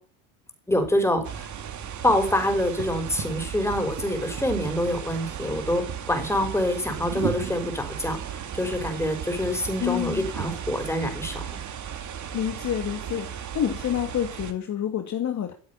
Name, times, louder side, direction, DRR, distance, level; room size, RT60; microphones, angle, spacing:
voice 1, 0.7-1.2 2.0-11.5, left 1 dB, 5° left, 6 dB, 5.5 m, -26 dB
sound 1, 1.2-14.5, right 8 dB, 40° right, 2.7 m, -35 dB
voice 2, 9.8-10.3 12.3-15.5, left 10 dB, 35° left, 6 dB, 2.2 m, -28 dB
14.5 x 8.1 x 8.4 m, 0.43 s
supercardioid pair, 100°, 45 cm